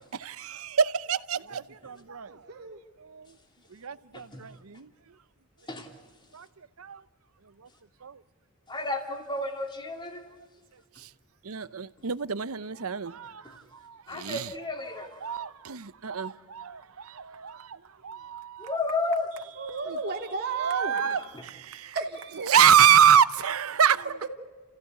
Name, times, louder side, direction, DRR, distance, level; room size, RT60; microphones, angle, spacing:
voice 1, 0.1-2.4 3.0-3.4 3.7-4.9 6.3-6.5 6.8-7.0 7.6-7.7 8.0-8.2 11.0-11.1 11.4-14.5 15.2-18.8 19.9-20.0 20.6-21.9 22.5-24.0, right 8 dB, 70° right, 0.8 m, -26 dB
voice 2, 2.3-2.8 19.5-21.2 21.9-22.5, right 4 dB, 50° right, 3.0 m, -33 dB
voice 3, 8.7-10.3 13.4-13.6 14.1-15.1 18.6-19.3 20.9-21.4, left 2 dB, 20° left, 2.9 m, -32 dB
30.0 x 16.0 x 8.2 m
head